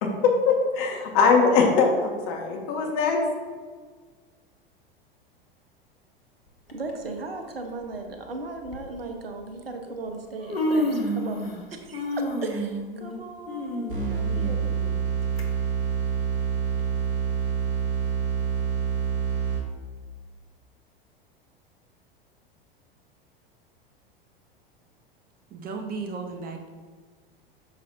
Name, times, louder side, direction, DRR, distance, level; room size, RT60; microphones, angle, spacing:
voice 1, 0.0-3.2, left 5 dB, 45° left, 1 dB, 1.8 m, -21 dB
Human voice, 6.7-6.9 8.0-8.1 8.7-8.8 9.9-10.0 10.2-11.7 11.9-15.4 15.8-15.9 16.8-16.9, equal, 80° left, 1.2 m, -29 dB
voice 2, 6.7-11.4 11.7-14.6, right 3 dB, 80° right, 5 dB, 1.1 m, -37 dB
sound 1, 13.9-19.9, right 7 dB, 60° right, 2.4 m, -27 dB
voice 3, 25.5-26.7, right 4 dB, 30° right, 4 dB, 1.1 m, -34 dB
9.4 x 6.8 x 2.8 m, 1.5 s
figure-of-eight pair, 85°, 29 cm